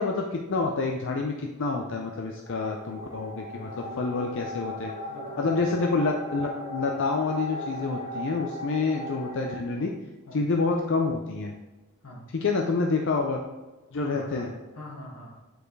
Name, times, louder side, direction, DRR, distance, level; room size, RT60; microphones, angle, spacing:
voice 1, 0.0-1.3 1.6-3.7 4.0-4.9 5.4-9.9 10.3-11.5 12.4-13.4 13.9-14.5, left 3 dB, 60° left, 2 dB, 0.5 m, -27 dB
sound 1, 2.5-9.5, equal, 30° left, 1.0 m, -38 dB
voice 2, 3.6-4.3 5.1-5.7 9.8-10.0 10.3-10.4 12.0-12.3 12.6-12.7 13.9-15.4, left 1 dB, 85° left, -2 dB, 1.9 m, -44 dB
8.9 x 4.7 x 3.2 m, 1.2 s
head